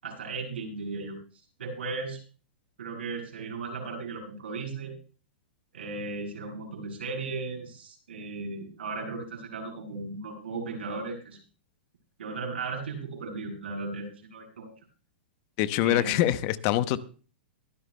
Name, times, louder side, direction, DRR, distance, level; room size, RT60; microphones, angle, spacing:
voice 1, 0.0-1.2 1.6-2.2 2.8-4.9 5.7-11.4 12.2-14.7 15.8-16.2, right 3 dB, 85° right, 7.0 m, -36 dB
voice 2, 15.6-17.0, left 13 dB, 45° left, 0.8 m, -24 dB
23.0 x 10.5 x 2.2 m
hypercardioid pair, 130°, 6 cm